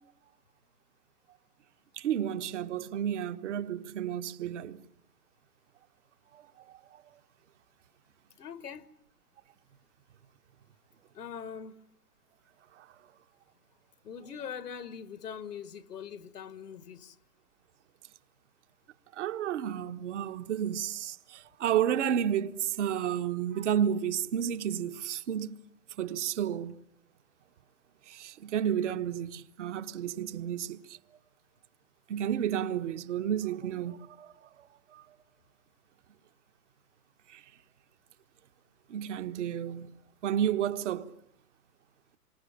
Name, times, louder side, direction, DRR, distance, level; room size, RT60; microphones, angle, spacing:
voice 1, 2.0-4.8 6.3-6.5 6.9-7.0 12.8-12.9 19.2-25.6 26.0-26.8 28.1-31.0 32.1-34.3 34.6-34.7 34.9-35.0 37.3-37.4 38.9-41.1, right 9 dB, 50° right, 1.4 m, -31 dB
voice 2, 8.4-8.9 11.1-11.8 14.0-17.2, left 7 dB, 90° left, 1.8 m, -42 dB
27.5 x 25.0 x 8.7 m
hypercardioid pair, 155°, 46 cm